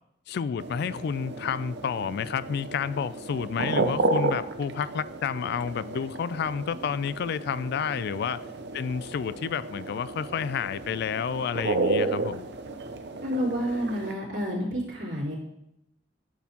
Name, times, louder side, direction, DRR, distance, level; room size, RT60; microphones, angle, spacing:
voice 1, 0.3-8.4 8.7-12.5, left 7 dB, 60° left, 0.3 m, -30 dB
sound 1, 0.6-14.1, right 3 dB, 65° right, 0.7 m, -32 dB
voice 2, 13.2-15.4, equal, 80° right, 3.3 m, -29 dB
12.0 x 6.2 x 2.9 m
head